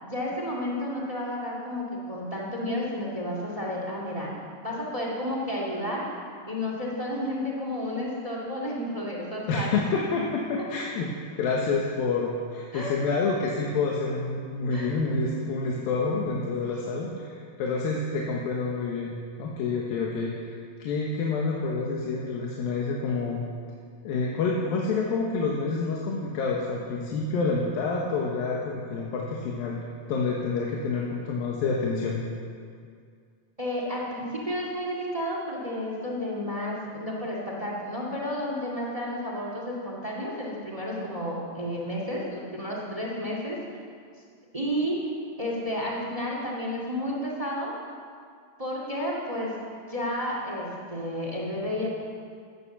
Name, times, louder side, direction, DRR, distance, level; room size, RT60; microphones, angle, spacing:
voice 1, 0.0-4.4 4.6-6.0 6.5-9.8 12.7-12.9 14.7-14.9 33.6-43.6 44.5-45.0 45.4-47.7 48.6-49.5 49.9-51.9, left 1 dB, 25° right, -2 dB, 0.8 m, -31 dB
voice 2, 9.5-11.1 11.4-23.4 24.0-29.8 30.1-32.2, left 4 dB, 70° left, -2 dB, 2.8 m, -28 dB
15.0 x 10.0 x 7.1 m, 2.2 s
omnidirectional pair, 4.5 m